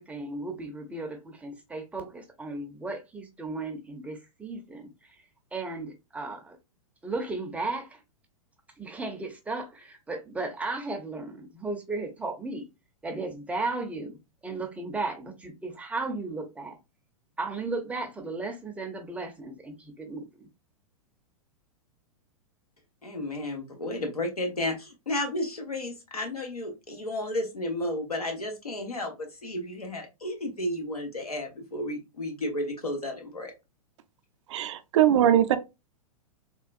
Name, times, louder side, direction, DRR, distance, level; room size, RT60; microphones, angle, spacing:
voice 1, 0.0-4.9 5.5-6.6 7.0-8.0 8.8-12.7 13.0-14.2 14.4-16.8 17.4-20.5, right 3 dB, 5° right, 0.6 m, -35 dB
voice 2, 23.0-33.5, left 1 dB, 85° left, 1.0 m, -32 dB
voice 3, 34.5-35.6, right 10 dB, 55° right, 0.4 m, -21 dB
3.6 x 2.3 x 2.4 m
figure-of-eight pair, 105°, 19 cm